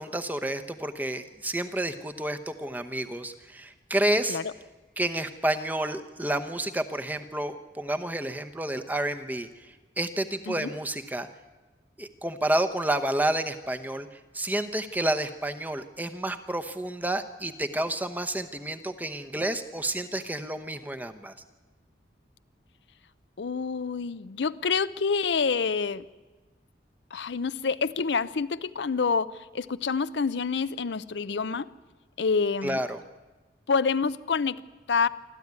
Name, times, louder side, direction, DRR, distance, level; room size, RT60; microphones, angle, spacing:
voice 1, 0.0-4.4 5.0-11.3 12.0-21.3 32.6-33.0, right 1 dB, 10° right, 7 dB, 0.9 m, -30 dB
voice 2, 23.4-26.1 27.1-31.7 32.2-32.8 33.7-34.6 34.9-35.1, left 5 dB, 80° left, 14 dB, 0.6 m, -27 dB
25.5 x 13.5 x 9.6 m, 1.3 s
head